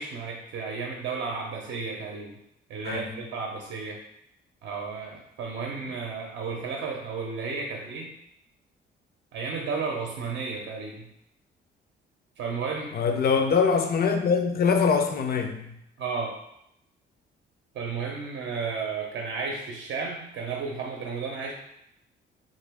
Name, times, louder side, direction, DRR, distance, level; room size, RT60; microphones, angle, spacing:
voice 1, 0.0-2.3 2.7-4.0 4.6-8.1 9.3-11.1 12.4-12.9 16.0-16.3 17.7-21.5, right 4 dB, 65° right, 0 dB, 0.6 m, -33 dB
voice 2, 2.8-3.2 12.9-15.8, left 5 dB, 50° left, 5 dB, 0.5 m, -23 dB
2.9 x 2.6 x 3.4 m, 0.80 s
cardioid pair, 90°, 20 cm